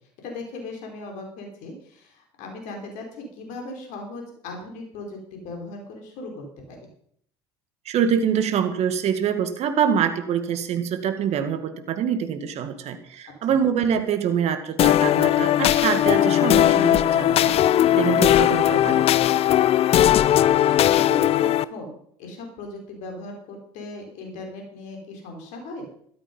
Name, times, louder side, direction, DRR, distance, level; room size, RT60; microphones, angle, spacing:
voice 1, 0.2-6.9 13.5-13.6 20.6-25.8, left 2 dB, 60° left, 2 dB, 4.8 m, -38 dB
voice 2, 7.9-17.6 17.9-19.1, right 8 dB, 50° right, 8 dB, 1.9 m, -25 dB
sound 1, 14.8-21.6, left 12 dB, 45° left, 0.6 m, -18 dB
13.0 x 12.0 x 5.5 m, 0.66 s
hypercardioid pair, 65°, 14 cm